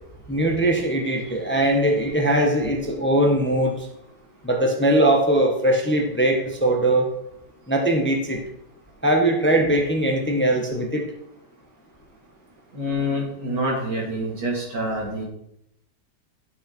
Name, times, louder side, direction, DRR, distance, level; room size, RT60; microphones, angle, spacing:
voice 1, 0.3-3.9 4.4-7.1 7.7-8.4 9.0-11.1, right 1 dB, 10° left, 1 dB, 0.9 m, -20 dB
voice 2, 12.7-15.3, equal, 80° right, -2 dB, 3.2 m, -26 dB
10.5 x 6.1 x 4.4 m, 0.80 s
omnidirectional pair, 1.8 m